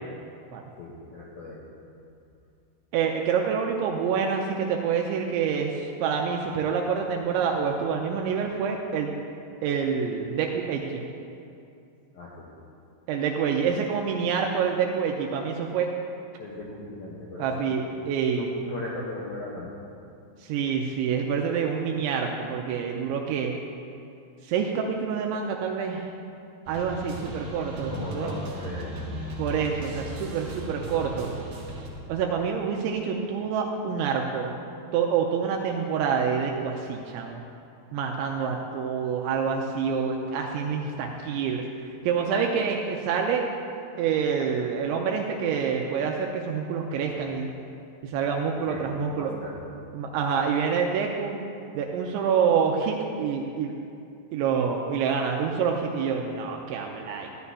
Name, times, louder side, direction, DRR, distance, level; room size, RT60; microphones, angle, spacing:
voice 1, 0.8-1.7 12.1-12.5 16.4-17.7 18.3-19.8 27.5-29.1 48.7-48.8 49.1-49.6, left 2 dB, 75° left, -6 dB, 2.2 m, -38 dB
voice 2, 2.9-9.2 9.6-11.0 13.1-15.9 17.4-18.5 20.4-23.6 24.4-26.1 26.7-28.3 29.4-31.3 32.1-34.5 34.9-37.4 37.9-41.7 42.0-43.4 44.0-47.5 48.0-49.3 49.9-51.4 51.7-53.8 54.3-57.3, right 6 dB, 85° right, 1 dB, 2.7 m, -27 dB
sound 1, 26.7-31.9, right 1 dB, 60° right, 2.2 m, -36 dB
13.5 x 11.5 x 2.8 m, 2.5 s
omnidirectional pair, 5.8 m